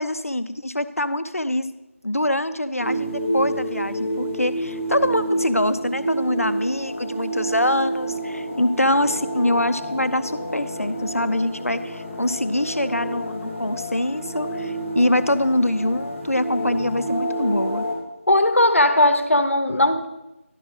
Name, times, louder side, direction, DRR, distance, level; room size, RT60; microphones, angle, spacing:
voice 1, 0.0-1.7 2.0-17.9, left 1 dB, 90° left, 12 dB, 0.6 m, -24 dB
sound 1, 2.8-17.9, right 1 dB, ahead, 0.9 m, -29 dB
voice 2, 18.3-20.1, left 1 dB, 65° left, 10 dB, 0.9 m, -18 dB
11.5 x 7.1 x 3.9 m, 0.98 s
figure-of-eight pair, 170°, 8 cm